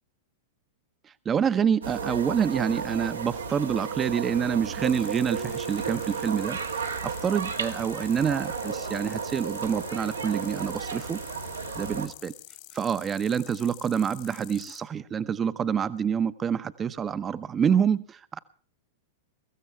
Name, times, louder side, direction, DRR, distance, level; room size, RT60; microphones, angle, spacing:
voice 1, 1.2-11.2 11.7-12.3 12.7-18.4, right 7 dB, 25° right, 0.9 m, -27 dB
sound 1, 1.8-12.1, right 5 dB, 80° right, 1.7 m, -33 dB
sound 2, 4.8-14.8, left 16 dB, 50° left, 2.4 m, -48 dB
23.0 x 15.0 x 3.4 m
figure-of-eight pair, 95°, 0 cm